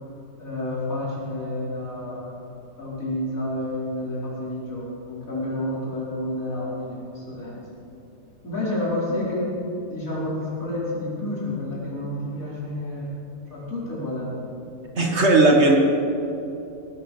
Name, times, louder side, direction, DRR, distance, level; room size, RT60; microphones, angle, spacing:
voice 1, 0.4-2.3 2.8-7.6 8.4-13.1 13.5-14.3, left 1 dB, 70° left, -7 dB, 5.3 m, -29 dB
voice 2, 15.0-15.8, right 2 dB, 50° right, 1 dB, 1.9 m, -16 dB
18.5 x 12.5 x 5.6 m, 2.8 s
omnidirectional pair, 1.5 m